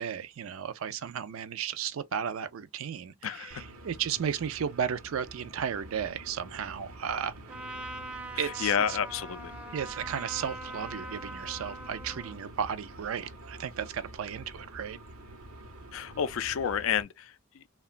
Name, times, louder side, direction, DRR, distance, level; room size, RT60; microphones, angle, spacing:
voice 1, 0.0-7.3 8.4-9.0 9.7-15.0, right 8 dB, 70° right, 0.4 m, -34 dB
voice 2, 3.2-3.6 8.3-9.5 15.9-17.6, left 8 dB, 65° left, 0.3 m, -30 dB
sound 1, 3.5-17.0, right 1 dB, 85° right, 0.8 m, -47 dB
Trumpet, 7.5-12.4, right 1 dB, 5° right, 0.5 m, -42 dB
2.9 x 2.2 x 2.4 m
head